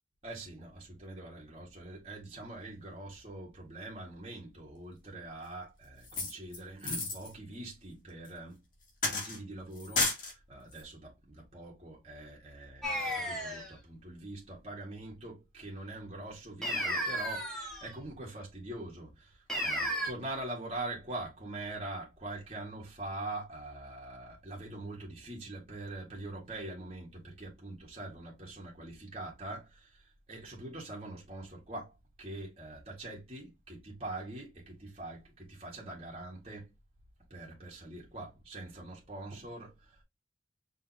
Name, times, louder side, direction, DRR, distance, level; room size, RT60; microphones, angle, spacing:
voice 1, 0.2-8.6 9.1-36.7 37.3-40.0, right 2 dB, 35° right, 1.8 m, -43 dB
sound 1, 6.0-7.3 8.3-8.4 9.0-9.4 9.8-10.3 10.7-10.8, left 3 dB, 50° left, 1.9 m, -32 dB
sound 2, 12.8-13.7 16.6-17.9 19.5-20.1, equal, 5° left, 1.6 m, -33 dB
5.0 x 3.6 x 2.8 m
head